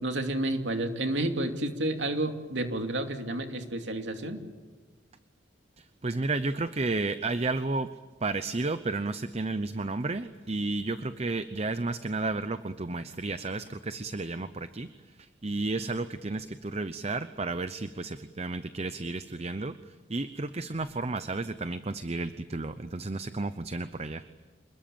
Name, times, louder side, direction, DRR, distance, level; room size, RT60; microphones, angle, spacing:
voice 1, 0.0-4.4, right 1 dB, 75° right, 5 dB, 2.7 m, -30 dB
voice 2, 5.8-7.9 8.2-24.2, right 3 dB, 35° right, 11 dB, 0.8 m, -32 dB
27.5 x 21.0 x 8.9 m, 1.3 s
head